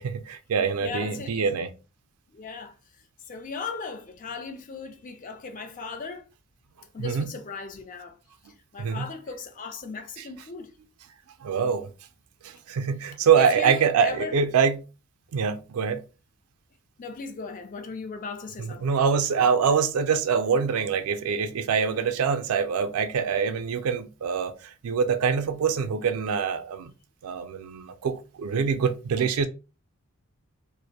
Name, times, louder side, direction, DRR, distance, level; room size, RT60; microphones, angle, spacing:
voice 1, 0.0-1.7 7.0-7.3 8.8-9.1 10.2-10.3 11.4-11.9 12.4-14.8 15.3-16.0 18.6-26.9 27.2-29.5, right 6 dB, 80° right, 0.4 m, -25 dB
voice 2, 0.8-1.5 2.3-2.7 3.3-6.2 6.9-8.2 8.7-10.7 13.4-14.3 17.0-19.0, left 4 dB, 35° left, 0.4 m, -37 dB
2.5 x 2.0 x 2.7 m
head